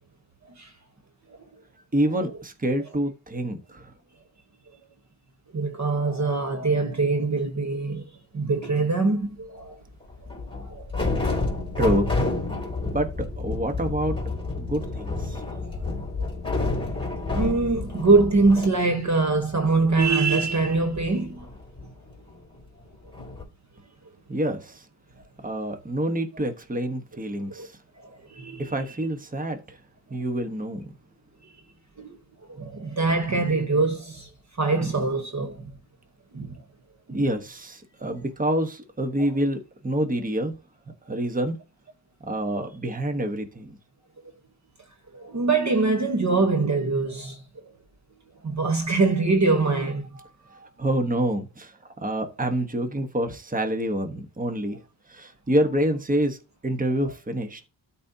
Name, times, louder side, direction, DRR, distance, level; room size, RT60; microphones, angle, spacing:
voice 1, 1.9-3.9 11.8-12.3 12.9-13.1 13.4-14.2 14.6-15.4 24.3-24.8 25.4-27.7 28.6-29.6 30.1-30.9 37.1-40.5 41.1-41.6 42.3-43.8 50.8-51.7 52.0-54.8 55.1-56.4 56.6-57.6, right 1 dB, 20° right, 1.2 m, -27 dB
voice 2, 5.5-8.0 8.3-9.8 10.5-10.8 12.6-12.7 15.5-15.8 16.6-21.5 27.5-27.7 28.0-28.7 32.0-32.2 32.5-34.3 34.6-35.6 36.3-36.5 37.1-37.2 38.0-38.1 41.1-41.2 45.1-47.4 48.4-50.3, right 3 dB, 40° right, 1.2 m, -24 dB
sound 1, 8.6-8.8 10.1-18.7 19.0-19.1 19.3-22.6 23.1-23.4, left 3 dB, 10° left, 3.4 m, -30 dB
13.0 x 4.3 x 2.8 m
wide cardioid pair, 100°, 44 cm